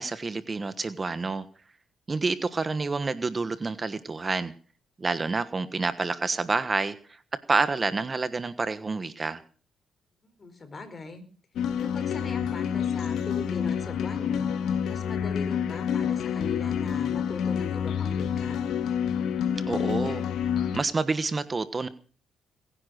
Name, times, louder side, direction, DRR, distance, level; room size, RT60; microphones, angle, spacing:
voice 1, 0.0-1.4 2.1-4.5 5.0-7.2 7.5-9.4 19.7-20.2 20.7-21.9, right 3 dB, 30° right, 1.3 m, -28 dB
voice 2, 10.2-11.2 11.8-18.6, left 4 dB, 35° left, 4.7 m, -40 dB
sound 1, 11.6-20.8, left 8 dB, 75° left, 1.8 m, -28 dB
21.0 x 10.5 x 6.5 m
cardioid pair, 90°, 0 cm